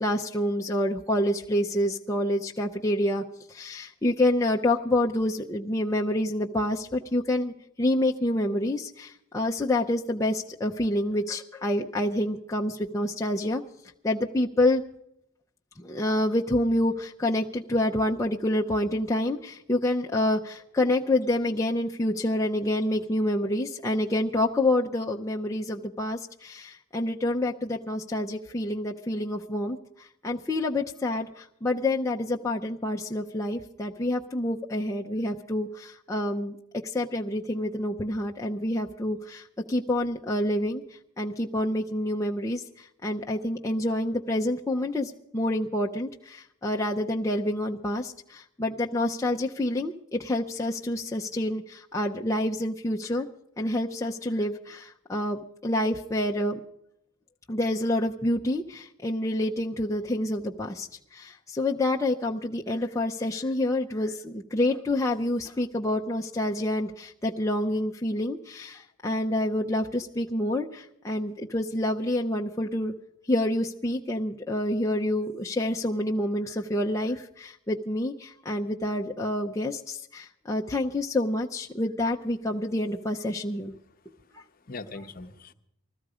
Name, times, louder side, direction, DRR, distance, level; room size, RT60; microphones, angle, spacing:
voice 1, 0.0-3.2 3.5-7.5 7.8-13.6 14.0-14.8 15.8-36.6 36.8-40.8 41.2-53.3 53.6-56.6 57.5-60.9 61.1-72.9 73.3-83.8, left 1 dB, 15° left, -1 dB, 0.6 m, -27 dB
voice 2, 84.2-85.5, left 3 dB, 45° left, 8 dB, 0.8 m, -42 dB
20.0 x 14.0 x 4.9 m, 0.77 s
head